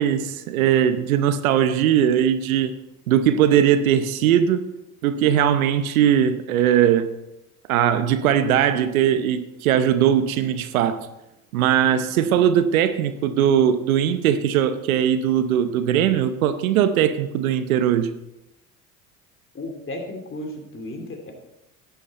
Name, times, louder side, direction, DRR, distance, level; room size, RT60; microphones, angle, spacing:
voice 1, 0.0-2.7 3.1-4.6 5.0-7.1 7.7-11.1 11.5-18.1, right 9 dB, 85° right, 0.8 m, -20 dB
voice 2, 19.5-21.3, left 1 dB, 30° left, 3.1 m, -34 dB
11.5 x 9.9 x 4.3 m
hypercardioid pair, 65°, 41 cm